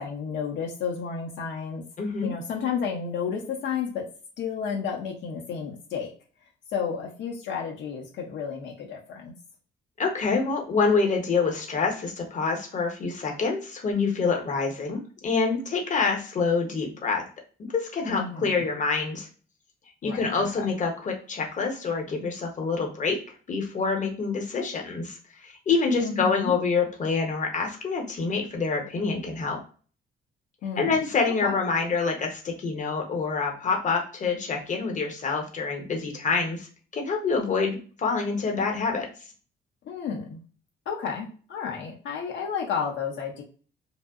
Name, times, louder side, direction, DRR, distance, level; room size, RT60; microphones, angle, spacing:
voice 1, 0.0-1.9 2.2-4.1 4.4-6.1 6.7-9.3 18.1-18.7 20.0-20.8 26.0-26.6 30.6-31.5 39.8-40.4 40.9-43.4, left 6 dB, 70° left, 0 dB, 0.6 m, -32 dB
voice 2, 2.0-2.3 10.0-17.2 17.7-19.3 20.0-23.2 23.5-25.2 25.4-29.6 30.8-36.7 36.9-39.1, left 4 dB, 40° left, 2 dB, 0.8 m, -26 dB
2.6 x 2.0 x 2.3 m, 0.40 s
cardioid pair, 90°, 20 cm